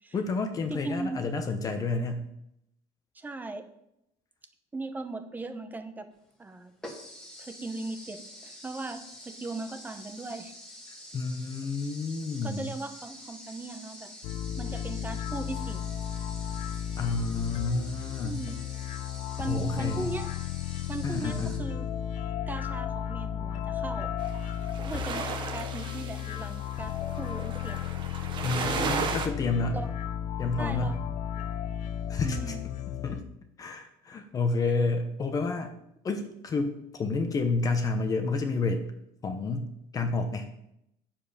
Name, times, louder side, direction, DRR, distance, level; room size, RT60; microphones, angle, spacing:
voice 1, 0.1-2.3 11.1-12.7 17.0-18.4 19.4-20.1 21.0-21.6 28.4-29.8 30.4-30.9 32.1-32.5 33.0-33.2 33.6-35.7 36.0-38.8 39.2-39.7 39.9-40.5, left 3 dB, 25° left, 6 dB, 0.9 m, -30 dB
voice 2, 0.7-1.3 3.1-3.7 4.7-6.1 6.4-6.7 7.4-10.5 12.4-14.1 14.6-15.8 18.2-18.6 19.4-20.3 20.9-21.9 22.5-24.1 24.8-25.3 25.5-27.8 29.7-29.9 30.2-30.3 30.6-31.0 32.2-32.6, right 3 dB, 15° right, 9 dB, 0.8 m, -38 dB
sound 1, 6.2-6.3 6.8-21.6, left 1 dB, 5° left, 1.7 m, -47 dB
sound 2, 14.2-33.2, left 10 dB, 60° left, 0.7 m, -34 dB
sound 3, 24.2-29.3, right 6 dB, 35° right, 1.1 m, -34 dB
9.4 x 7.3 x 5.1 m, 0.79 s
cardioid pair, 155°, 14 cm